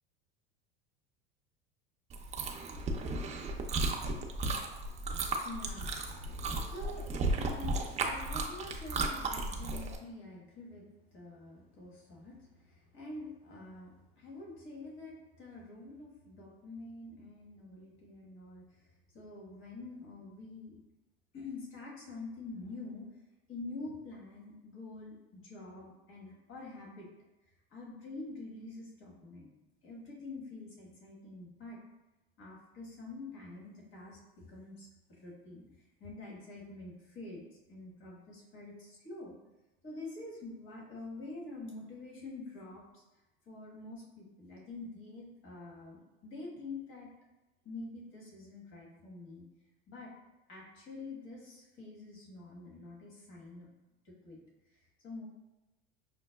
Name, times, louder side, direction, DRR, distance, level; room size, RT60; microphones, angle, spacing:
Chewing mastication, 2.1-10.0, right 3 dB, 25° right, 0.4 m, -35 dB
voice 1, 5.4-18.8 19.1-20.8 21.3-23.1 23.5-27.1 27.7-29.5 29.8-31.8 32.4-35.7 36.0-39.4 39.8-43.0 43.4-47.1 47.6-49.4 49.9-50.1 50.5-53.7 54.0-54.4 54.7-55.2, left 2 dB, 40° left, -4 dB, 1.3 m, -47 dB
5.7 x 2.1 x 2.2 m, 1.0 s
hypercardioid pair, 95°, 30 cm